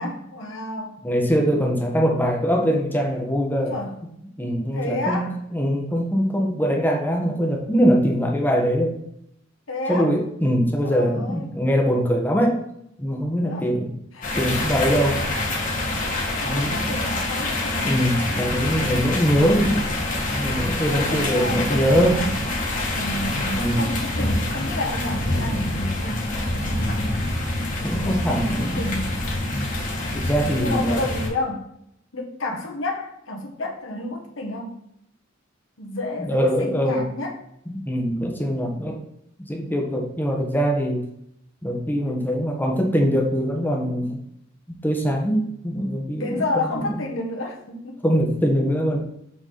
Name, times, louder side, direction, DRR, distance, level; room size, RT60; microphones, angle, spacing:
voice 1, 0.0-1.0 3.7-3.9 4.7-5.3 9.7-10.1 10.8-11.5 13.4-13.7 14.1-14.4 16.4-18.0 20.9-22.4 22.9-27.0 27.9-29.3 30.6-31.7 32.1-34.8 35.8-37.3 46.2-48.0, left 2 dB, 75° left, 1 dB, 1.7 m, -30 dB
voice 2, 1.0-3.8 4.4-8.9 9.9-12.6 13.0-13.9 14.4-15.2 16.4-17.0 17.8-19.9 20.3-22.2 23.6-24.0 27.8-28.9 29.5-29.7 30.1-31.0 36.2-37.1 37.7-39.0 39.5-41.0 41.6-44.2 44.8-47.0 48.0-49.0, equal, 10° left, 1 dB, 1.3 m, -22 dB
sound 1, 14.2-31.3, left 2 dB, 40° left, 1.9 m, -26 dB
7.6 x 4.9 x 4.1 m, 0.76 s
head